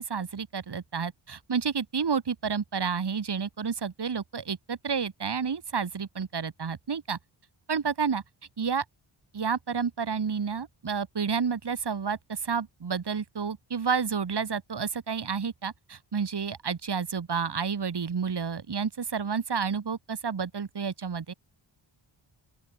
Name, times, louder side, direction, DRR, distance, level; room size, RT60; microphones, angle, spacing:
voice 1, 0.0-7.2 7.7-8.2 8.6-8.8 9.3-21.3, right 6 dB, 55° right, 5.4 m, -30 dB
open air
wide cardioid pair, 145°, 48 cm